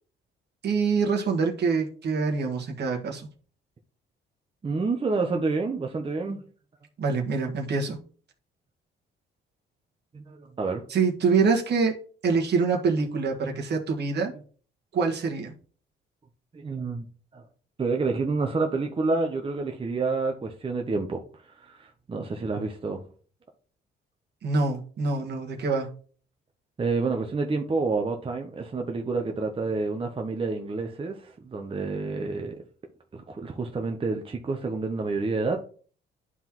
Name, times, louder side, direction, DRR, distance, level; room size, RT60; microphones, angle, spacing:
voice 1, 0.6-3.3 7.0-8.0 10.9-11.9 12.2-14.3 14.9-15.5 24.4-25.9, right 4 dB, 55° right, 1.5 m, -25 dB
voice 2, 4.6-6.4 10.1-10.8 16.5-17.1 17.3-17.4 17.8-23.0 26.8-32.6 33.1-35.7, right 3 dB, 25° right, 0.8 m, -29 dB
11.0 x 3.7 x 3.0 m
cardioid pair, 90°, 20 cm